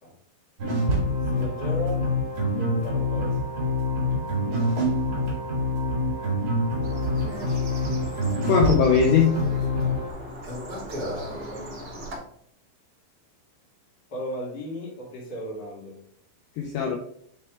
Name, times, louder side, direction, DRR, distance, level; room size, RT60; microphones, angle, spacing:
sound 1, 0.6-10.1, left 1 dB, 70° right, 1.2 m, -26 dB
voice 1, 1.3-2.1 2.5-3.4 9.8-10.0 10.9-12.1 14.1-16.0, right 1 dB, 35° left, -5 dB, 1.7 m, -36 dB
sound 2, 6.8-12.2, equal, 40° right, 2.1 m, -37 dB
voice 2, 8.5-9.6 16.6-17.0, left 6 dB, 85° left, 1 dB, 2.4 m, -21 dB
8.9 x 3.5 x 3.4 m, 0.68 s
omnidirectional pair, 5.8 m